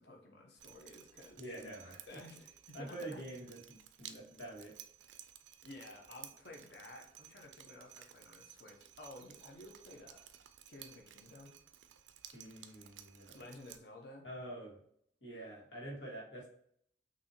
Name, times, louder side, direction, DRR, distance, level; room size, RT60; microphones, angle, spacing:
voice 1, 0.0-1.4 2.1-3.2 5.6-10.3 10.7-11.6 13.3-14.3, left 2 dB, 60° left, 1 dB, 0.9 m, -53 dB
Drip, 0.6-13.8, right 10 dB, 80° right, 0.4 m, -56 dB
voice 2, 1.4-2.2 2.7-4.7 12.3-13.4 14.2-14.8 15.2-16.5, right 1 dB, 85° left, -4 dB, 1.8 m, -47 dB
6.2 x 2.8 x 2.8 m, 0.68 s
head